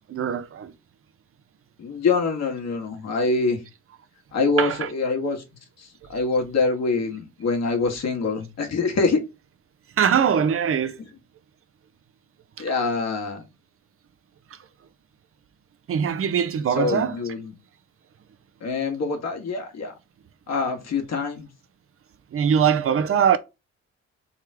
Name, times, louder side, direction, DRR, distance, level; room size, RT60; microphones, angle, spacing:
voice 1, 0.1-0.7 4.6-4.9 10.0-11.0 15.9-17.2 22.3-23.4, right 8 dB, 50° right, 0.6 m, -22 dB
voice 2, 1.8-3.6 4.3-5.4 5.8-9.2 12.6-13.4 16.7-17.5 18.6-19.9 20.5-21.5, left 4 dB, 60° left, 1.6 m, -25 dB
3.6 x 3.2 x 4.6 m
cardioid pair, 90°, 30 cm